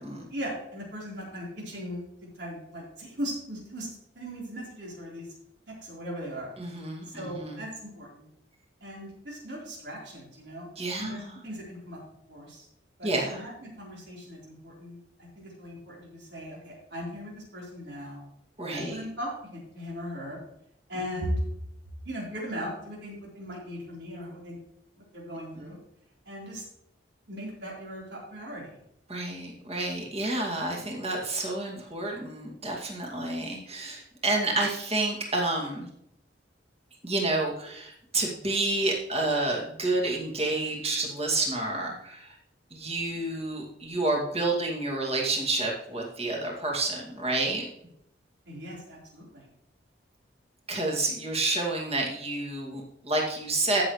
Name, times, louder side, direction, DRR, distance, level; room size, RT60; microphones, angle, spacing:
voice 1, 0.3-3.9 4.1-5.3 5.8-6.5 7.1-8.3 8.8-10.7 11.0-12.0 12.3-12.7 13.0-15.0 15.4-18.2 18.7-20.4 20.9-21.4 22.0-24.6 25.0-25.8 26.3-26.6 27.3-28.8 48.5-49.5, equal, 70° right, -4 dB, 4.1 m, -38 dB
voice 2, 6.6-7.6 10.8-11.2 13.0-13.3 18.6-19.0 25.6-25.7 29.1-35.9 37.0-42.3 42.7-47.7 50.7-53.8, right 2 dB, 35° right, -1 dB, 2.3 m, -29 dB
16.0 x 6.5 x 3.2 m, 0.75 s
head